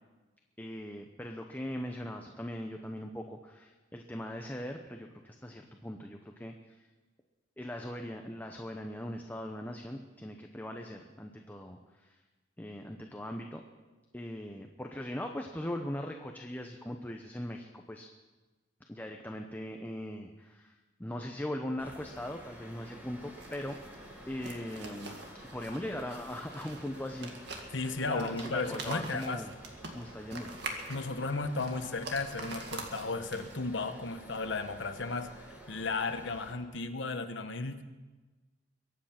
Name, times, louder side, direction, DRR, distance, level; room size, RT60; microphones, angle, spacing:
voice 1, 0.6-6.8 7.6-12.2 12.6-13.6 14.1-18.1 18.9-23.8 24.3-25.2 25.5-27.3 28.0-29.5 29.9-30.5, left 1 dB, 10° left, 3 dB, 0.8 m, -40 dB
sound 1, 21.8-36.5, equal, 10° right, 2.1 m, -51 dB
sound 2, 23.2-33.7, right 3 dB, 60° right, 2.0 m, -45 dB
voice 2, 27.7-29.4 30.9-35.3 35.7-37.8, left 3 dB, 70° left, 8 dB, 1.1 m, -34 dB
23.0 x 9.0 x 5.9 m, 1.2 s
head